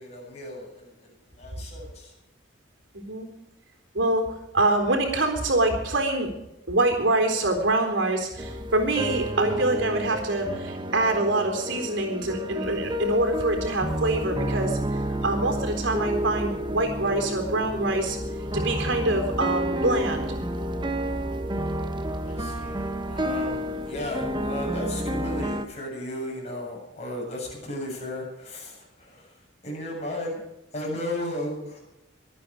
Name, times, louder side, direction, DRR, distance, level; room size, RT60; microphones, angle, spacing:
voice 1, 0.0-2.1 22.3-29.3 29.6-30.4 30.7-31.8, left 1 dB, 35° left, -2 dB, 7.4 m, -35 dB
voice 2, 2.9-3.3 3.9-6.3 6.7-18.2 18.5-20.4, right 2 dB, 70° right, 4 dB, 3.9 m, -25 dB
sound 1, 8.4-25.7, equal, 25° right, 1.0 m, -30 dB
23.5 x 9.3 x 4.9 m, 0.93 s
head